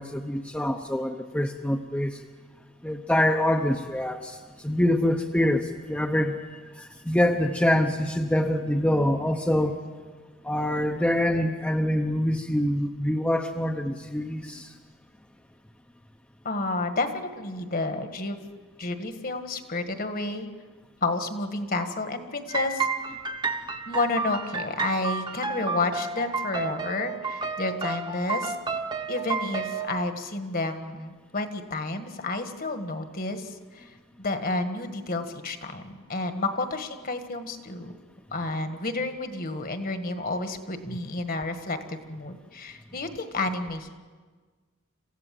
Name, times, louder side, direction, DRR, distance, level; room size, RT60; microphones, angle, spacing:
voice 1, 0.0-2.2 2.8-6.4 6.8-9.8 10.4-14.8 40.9-41.0, left 1 dB, 5° left, 3 dB, 0.8 m, -25 dB
voice 2, 16.5-18.5 18.8-20.5 21.0-22.9 23.9-28.5 29.1-37.9 38.3-43.9, left 2 dB, 45° left, 8 dB, 1.6 m, -30 dB
sound 1, 22.5-29.9, right 4 dB, 20° right, 1.1 m, -31 dB
27.0 x 16.0 x 7.7 m, 1.5 s
head